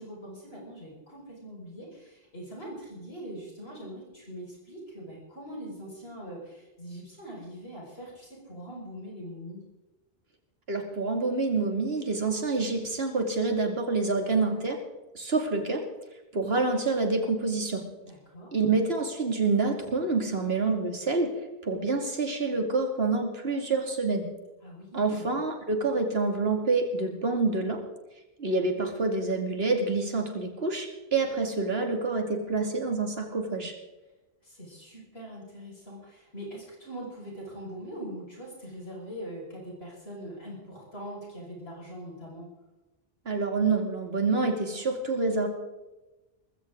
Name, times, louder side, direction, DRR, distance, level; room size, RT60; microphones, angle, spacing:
voice 1, 0.0-9.6 18.0-18.5 24.6-25.3 34.4-42.5, equal, 80° left, -3 dB, 5.7 m, -42 dB
voice 2, 10.7-14.8 15.1-15.8 16.3-17.8 18.5-21.4 21.6-24.3 24.9-27.8 28.4-33.7 43.3-45.5, right 3 dB, 75° right, 3 dB, 2.7 m, -27 dB
19.5 x 16.0 x 3.8 m, 1.1 s
omnidirectional pair, 1.0 m